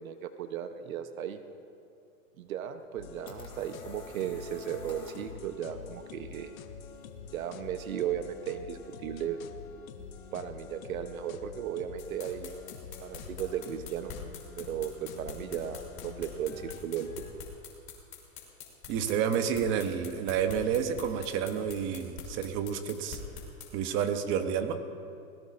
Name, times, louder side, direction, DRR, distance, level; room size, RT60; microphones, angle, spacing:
voice 1, 0.0-1.4 2.4-6.5 7.3-9.4 10.3-12.5 13.0-14.1 14.6-17.5, right 9 dB, 70° right, 9 dB, 1.0 m, -36 dB
sound 1, 2.8-5.4, left 4 dB, 10° left, 1.6 m, -50 dB
sound 2, 3.0-17.3, left 7 dB, 70° left, 1.2 m, -47 dB
sound 3, 12.0-23.7, left 9 dB, 30° left, 3.4 m, -45 dB
voice 2, 18.9-23.2 23.7-24.8, right 8 dB, 30° right, 8 dB, 0.9 m, -30 dB
20.5 x 18.5 x 2.6 m, 2.5 s
hypercardioid pair, 140°, 42 cm